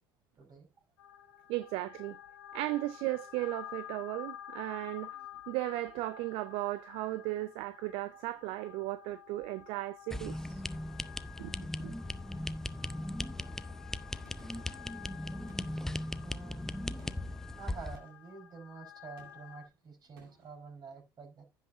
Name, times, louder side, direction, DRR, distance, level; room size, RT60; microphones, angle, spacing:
sound 1, 1.0-19.7, left 11 dB, 70° left, 1.6 m, -51 dB
voice 1, 1.5-2.2 2.5-5.2 5.5-10.6 11.4-11.5 11.8-11.9 14.7-14.8, right 17 dB, 50° right, 0.5 m, -36 dB
sound 2, 10.1-18.0, left 1 dB, 5° left, 0.6 m, -38 dB
Gunshot gunfire, 14.3-14.9 15.5-16.2 17.0-17.4 18.0-18.4 19.2-19.7 20.2-20.6, right 2 dB, 70° right, 2.3 m, -61 dB
voice 2, 16.2-16.8 17.4-21.4, right 5 dB, 35° right, 4.8 m, -49 dB
15.5 x 5.8 x 2.7 m
figure-of-eight pair, 60°, 12 cm